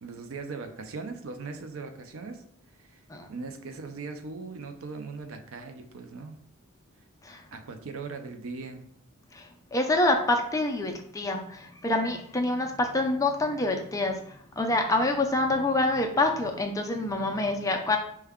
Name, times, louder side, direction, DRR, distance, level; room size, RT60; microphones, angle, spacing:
voice 1, 0.0-2.4 2.8-3.0 3.3-6.4 7.5-8.8, right 4 dB, 65° right, 7 dB, 0.5 m, -39 dB
voice 2, 9.7-14.2 14.6-18.0, left 2 dB, 15° left, 4 dB, 0.3 m, -26 dB
4.5 x 2.2 x 3.5 m, 0.68 s
head